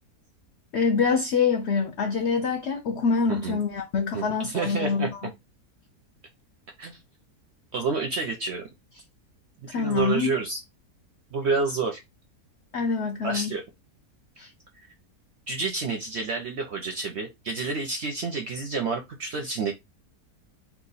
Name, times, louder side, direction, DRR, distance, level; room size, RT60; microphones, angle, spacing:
voice 1, 0.7-5.3 9.7-10.3 12.7-13.5 14.4-14.5, left 5 dB, 75° left, 0.6 m, -25 dB
voice 2, 4.1-5.1 6.8-7.0 7.7-8.7 9.7-10.6 11.3-12.0 13.2-13.6 15.5-19.7, right 4 dB, 65° right, 0.6 m, -29 dB
2.9 x 2.3 x 3.9 m
omnidirectional pair, 1.7 m